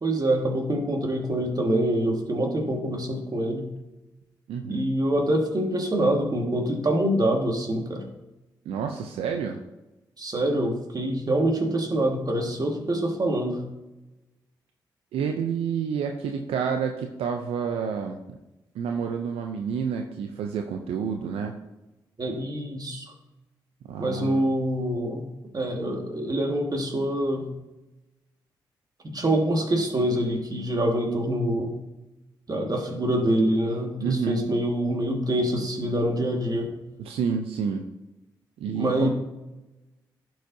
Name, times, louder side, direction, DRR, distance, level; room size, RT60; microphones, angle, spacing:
voice 1, 0.0-3.7 4.7-8.1 10.2-13.6 22.2-23.1 24.0-25.3 25.5-27.5 29.0-31.7 32.5-36.7 38.7-39.1, right 1 dB, 40° right, 2 dB, 1.8 m, -25 dB
voice 2, 4.5-4.8 8.7-9.6 15.1-18.4 18.7-21.5 23.9-24.5 34.0-34.4 37.0-37.8 38.6-39.1, right 6 dB, 80° right, 4 dB, 0.5 m, -29 dB
11.5 x 4.7 x 2.7 m, 0.99 s
supercardioid pair, 45°, 10 cm